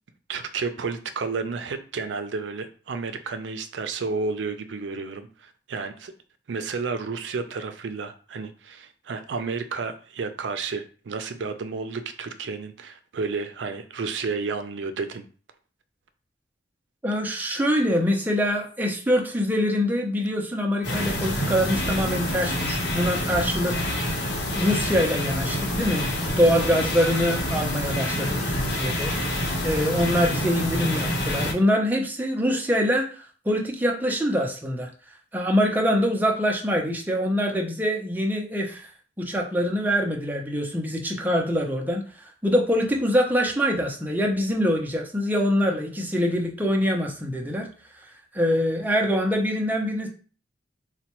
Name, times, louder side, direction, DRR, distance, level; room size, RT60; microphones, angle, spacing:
voice 1, 0.3-6.1 6.5-15.2, right 4 dB, 85° right, 9 dB, 0.4 m, -31 dB
voice 2, 17.0-24.0 24.5-34.9 35.3-38.9 39.2-42.0 42.4-47.7 48.3-50.1, equal, 10° right, 1 dB, 0.6 m, -24 dB
sound 1, 20.8-31.5, left 1 dB, 70° left, 1.0 m, -27 dB
4.1 x 2.2 x 2.9 m, 0.39 s
head